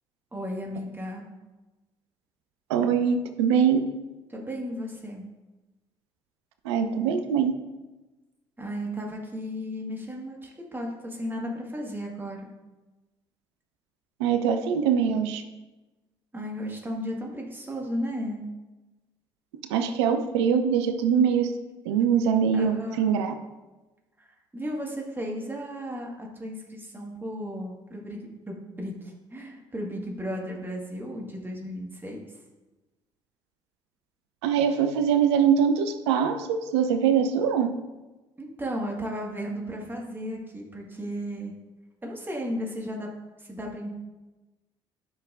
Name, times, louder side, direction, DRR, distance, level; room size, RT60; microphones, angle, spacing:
voice 1, 0.3-1.3 4.3-5.3 8.6-12.5 16.3-18.5 22.5-23.1 24.2-28.2 28.5-32.2 38.4-41.5 42.0-43.1 43.4-43.9, equal, 15° right, -1 dB, 1.8 m, -34 dB
voice 2, 2.7-3.8 6.6-7.5 14.2-15.4 19.7-21.5 21.9-23.3 34.4-37.7, right 7 dB, 70° right, 8 dB, 0.6 m, -23 dB
11.5 x 5.7 x 2.6 m, 1.1 s
figure-of-eight pair, 50°, 15 cm